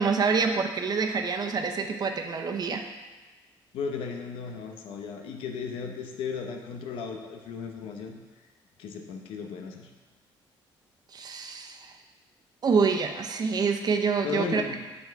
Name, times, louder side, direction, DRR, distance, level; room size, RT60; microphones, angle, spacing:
voice 1, 0.0-2.8 11.1-11.9 12.6-14.6, right 5 dB, 45° right, 5 dB, 0.9 m, -26 dB
voice 2, 3.7-8.2 8.8-9.9 14.2-14.8, left 5 dB, 85° left, 4 dB, 0.9 m, -35 dB
8.0 x 5.6 x 4.7 m, 1.2 s
cardioid pair, 85°, 9 cm